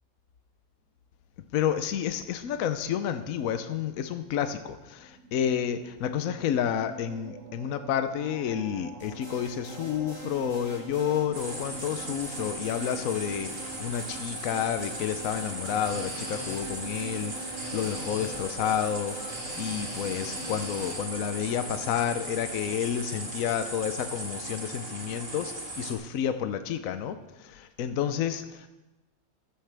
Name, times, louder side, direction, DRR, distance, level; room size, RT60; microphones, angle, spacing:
voice 1, 1.5-28.7, left 9 dB, 70° left, 9 dB, 1.0 m, -30 dB
sound 1, 5.0-22.4, right 3 dB, 75° right, 1.7 m, -48 dB
sound 2, 9.0-21.0, right 1 dB, 20° right, 5.3 m, -43 dB
sound 3, 11.3-25.9, right 1 dB, 40° right, 2.2 m, -38 dB
14.5 x 11.5 x 3.4 m, 1.0 s
omnidirectional pair, 1.5 m